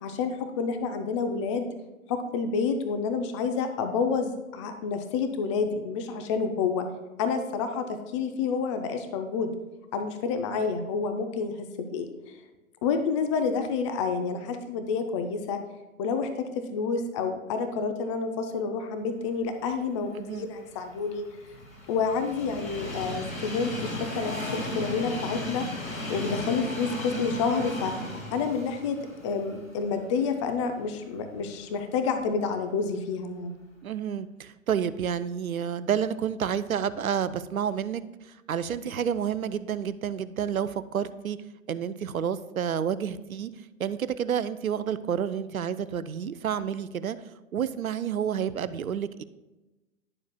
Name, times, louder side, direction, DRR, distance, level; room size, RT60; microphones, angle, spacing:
voice 1, 0.0-1.7 2.1-6.9 7.2-9.5 9.9-12.1 12.8-15.6 16.0-21.2 21.9-25.7 26.1-27.9 28.3-29.0 29.2-33.5, left 5 dB, 25° left, 7 dB, 0.5 m, -29 dB
voice 2, 20.1-20.5 33.8-41.4 41.7-43.5 43.8-47.2 47.5-49.2, right 8 dB, 80° right, 15 dB, 0.5 m, -30 dB
Train, 20.4-30.6 31.0-31.1 32.2-32.3, left 1 dB, 80° left, 1.8 m, -36 dB
10.5 x 7.0 x 2.2 m, 1.1 s
figure-of-eight pair, 105°, 41 cm